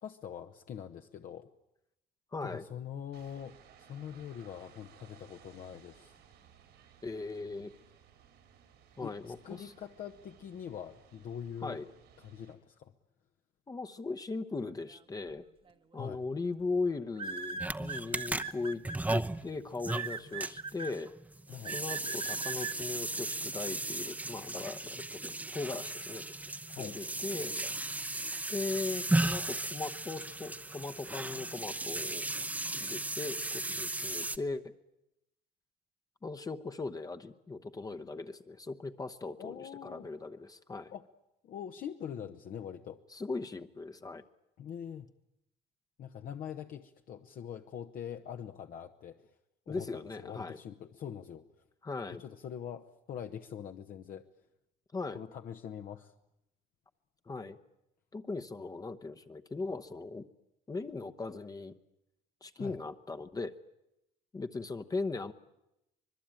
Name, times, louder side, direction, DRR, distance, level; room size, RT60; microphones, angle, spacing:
voice 1, 0.0-1.5 2.4-6.2 9.0-11.8 12.2-12.9 16.0-16.2 21.5-21.8 26.7-27.0 39.4-40.1 40.9-41.0 41.4-43.0 44.6-45.1 46.0-49.3 49.7-51.5 52.1-54.3 55.1-56.1 62.6-62.8, left 8 dB, 55° left, 5 dB, 1.1 m, -43 dB
voice 2, 2.3-2.6 7.0-7.7 9.0-9.7 11.6-11.8 13.7-15.5 15.9-21.1 21.7-25.2 25.5-26.2 26.8-27.6 28.5-32.3 32.7-34.7 36.2-40.9 43.1-44.2 49.7-50.6 51.8-52.2 54.9-55.2 57.3-57.6 58.1-60.3 60.7-61.7 62.4-63.5 64.3-65.3, left 3 dB, 20° left, 7 dB, 1.0 m, -38 dB
sound 1, 3.1-12.5, right 8 dB, 85° right, 5.6 m, -60 dB
sound 2, 15.7-16.0 17.2-19.2 19.9-20.9 21.6-22.7, right 5 dB, 30° right, 1.2 m, -39 dB
sound 3, 17.6-34.4, right 2 dB, 10° right, 0.8 m, -36 dB
25.0 x 20.5 x 9.0 m, 0.86 s
cardioid pair, 110°, 17 cm